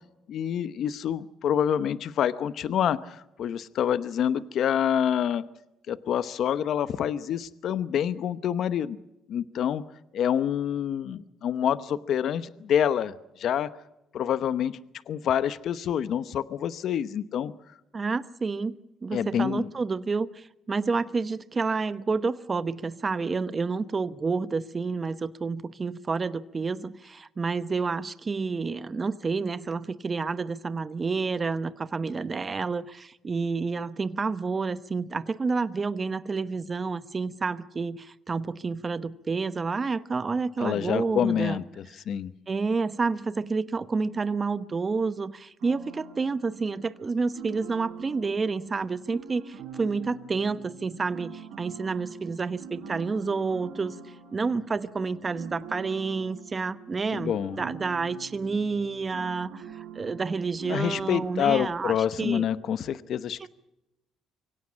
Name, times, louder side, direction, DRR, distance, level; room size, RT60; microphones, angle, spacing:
voice 1, 0.3-5.4 5.9-9.0 9.3-9.8 10.1-13.7 14.1-14.8 15.1-17.5 19.1-19.7 40.6-42.3 57.1-57.6 60.7-63.5, left 9 dB, 65° left, 0.9 m, -27 dB
voice 2, 17.9-18.8 19.0-41.6 42.5-54.0 54.3-62.4 63.4-63.5, right 4 dB, 30° right, 0.9 m, -29 dB
sound 1, 45.6-61.6, right 7 dB, 85° right, 4.1 m, -44 dB
24.0 x 17.0 x 8.5 m
cardioid pair, 80°, 0 cm